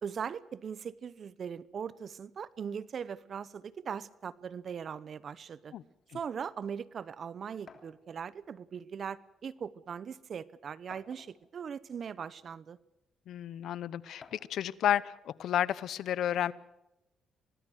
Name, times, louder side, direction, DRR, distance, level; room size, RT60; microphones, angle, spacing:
voice 1, 0.0-5.7 6.1-12.8, right 7 dB, 50° right, 19 dB, 0.9 m, -40 dB
sound 1, 7.7-8.0 9.1-9.2 9.6-9.7 10.9-11.5 12.4-12.5 14.2-14.6, left 5 dB, 45° left, 3.2 m, -53 dB
voice 2, 13.3-16.5, left 11 dB, 75° left, 20 dB, 0.8 m, -31 dB
25.5 x 19.0 x 6.4 m, 0.90 s
cardioid pair, 90°, 0 cm